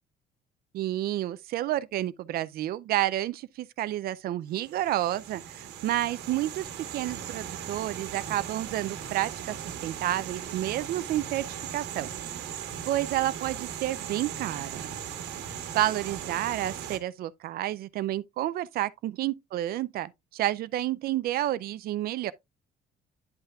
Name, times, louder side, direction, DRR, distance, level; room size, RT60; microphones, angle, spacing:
voice 1, 0.7-9.5 9.8-12.1 12.9-14.9 15.7-22.3, right 14 dB, 65° right, 0.5 m, -30 dB
sound 1, 4.6-17.0, right 9 dB, 85° right, 1.4 m, -38 dB
10.0 x 5.6 x 2.4 m
cardioid pair, 110°, 17 cm